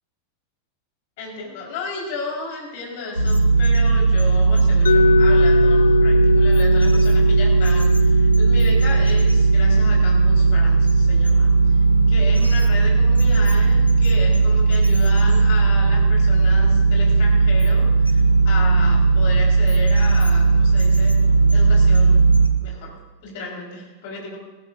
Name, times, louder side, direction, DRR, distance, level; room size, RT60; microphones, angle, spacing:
voice 1, 1.2-11.5 12.1-21.2 21.5-22.3 22.6-22.9 23.2-24.4, left 3 dB, 50° left, -1 dB, 4.7 m, -33 dB
sound 1, 3.2-22.5, right 4 dB, 90° left, 0.9 m, -16 dB
Mallet percussion, 4.8-10.7, left 4 dB, 70° left, 0.4 m, -22 dB
20.0 x 16.0 x 2.7 m, 1.2 s
figure-of-eight pair, 90°, 0 cm